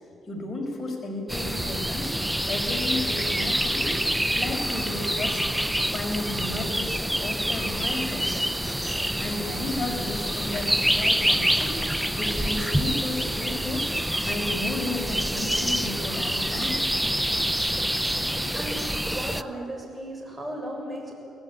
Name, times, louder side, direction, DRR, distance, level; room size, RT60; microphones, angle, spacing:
voice 1, 0.3-2.1 2.5-3.9 4.3-5.4 5.9-8.7 9.2-11.7 12.2-13.8 14.2-16.8, left 2 dB, 35° left, 1 dB, 5.9 m, -33 dB
sound 1, 1.3-19.4, equal, 5° right, 0.8 m, -26 dB
voice 2, 18.3-18.8 19.1-21.1, right 1 dB, 20° right, 1 dB, 7.1 m, -36 dB
24.0 x 17.0 x 9.1 m, 2.5 s
cardioid pair, 90°, 0 cm